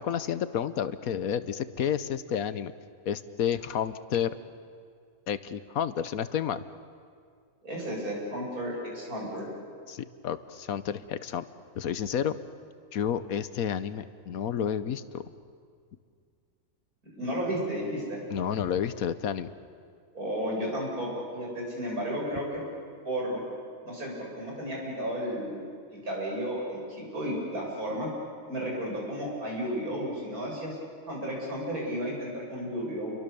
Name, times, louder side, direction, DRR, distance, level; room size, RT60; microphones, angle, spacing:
voice 1, 0.0-2.7 3.1-4.3 5.3-6.6 9.9-11.4 11.8-12.4 12.9-15.3 18.3-19.5, left 8 dB, 75° left, 13 dB, 1.3 m, -30 dB
voice 2, 7.6-9.5 17.1-18.2 20.1-22.6 23.0-23.4 23.8-28.1 28.5-30.8 31.1-33.1, equal, 80° right, -3 dB, 7.7 m, -33 dB
30.0 x 23.0 x 7.0 m, 2.2 s
omnidirectional pair, 1.5 m